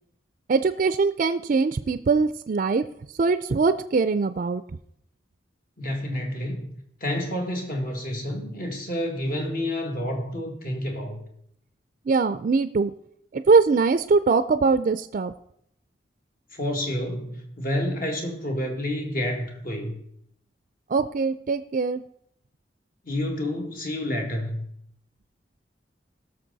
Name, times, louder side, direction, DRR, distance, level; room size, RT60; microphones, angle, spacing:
voice 1, 0.5-2.8 3.2-4.6 12.1-12.9 13.3-15.3 20.9-22.0, right 4 dB, 50° right, 12 dB, 0.4 m, -22 dB
voice 2, 5.8-6.6 7.0-11.2 16.5-19.9 23.0-24.6, left 1 dB, 55° left, 2 dB, 2.0 m, -29 dB
17.0 x 6.5 x 4.0 m, 0.72 s
head